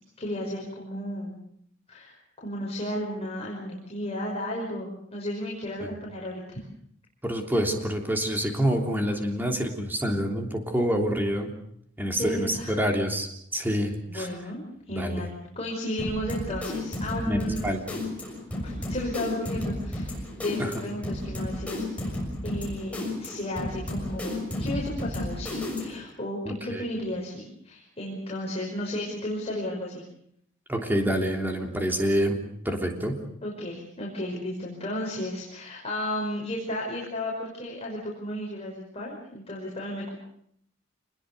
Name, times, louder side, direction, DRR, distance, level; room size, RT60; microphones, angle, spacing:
voice 1, 0.2-1.4 1.9-6.6 12.2-12.9 13.6-13.7 14.1-17.8 18.6-21.8 22.4-30.1 33.4-40.1, left 1 dB, 30° left, -3 dB, 5.5 m, -34 dB
voice 2, 7.2-11.5 12.0-14.3 14.9-15.3 17.2-17.8 26.4-26.8 30.7-32.4 32.6-33.2, equal, 10° right, 3 dB, 3.3 m, -27 dB
sound 1, 16.0-26.1, left 1 dB, 5° left, 6.5 m, -33 dB
27.0 x 21.0 x 6.8 m, 0.70 s
head